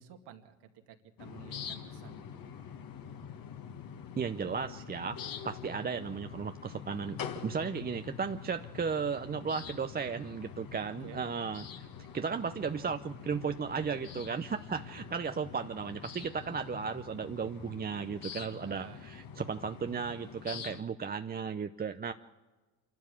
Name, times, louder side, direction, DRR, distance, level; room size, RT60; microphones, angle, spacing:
voice 1, 0.0-2.3 11.0-11.2 18.6-19.0, right 9 dB, 70° right, 5 dB, 2.2 m, -52 dB
sound 1, 1.2-20.8, left 8 dB, 55° left, 1.8 m, -45 dB
voice 2, 4.2-5.2 5.4-11.9 12.1-22.1, right 6 dB, 20° right, 8 dB, 0.6 m, -35 dB
26.5 x 12.0 x 8.3 m, 1.2 s
hypercardioid pair, 70°, 42 cm